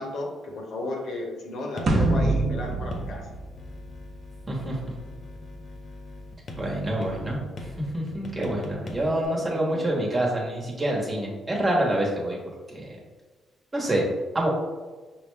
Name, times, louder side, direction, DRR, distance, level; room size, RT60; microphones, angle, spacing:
voice 1, 0.0-3.3 9.4-9.5 9.7-9.8, left 2 dB, 70° left, 0 dB, 0.9 m, -34 dB
sound 1, 1.8-9.3, left 2 dB, 45° left, 0.6 m, -41 dB
sound 2, 1.9-4.3, right 2 dB, 50° right, 0.7 m, -25 dB
voice 2, 6.6-7.4 7.9-12.4 12.7-13.0 13.7-14.0 14.3-14.5, right 1 dB, 25° right, -3 dB, 1.2 m, -26 dB
5.4 x 2.2 x 3.3 m, 1.3 s
cardioid pair, 90°, 0 cm